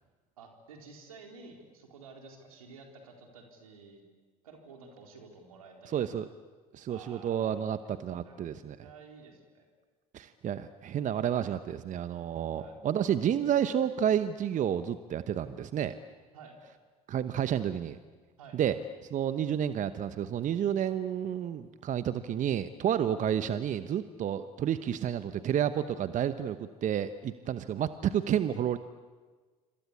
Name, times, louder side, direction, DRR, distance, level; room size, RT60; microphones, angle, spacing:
voice 1, 0.4-4.0 4.4-6.0 6.9-7.7 8.2-8.4 8.8-9.7 12.5-12.7 16.3-16.6 18.4-18.6, right 4 dB, 85° right, 2 dB, 4.3 m, -51 dB
voice 2, 5.9-6.3 6.7-8.8 10.1-16.0 17.1-18.0 18.5-18.8 19.1-28.8, right 9 dB, 45° right, 12 dB, 1.0 m, -30 dB
27.0 x 26.0 x 8.6 m, 1.4 s
hypercardioid pair, 65°, 18 cm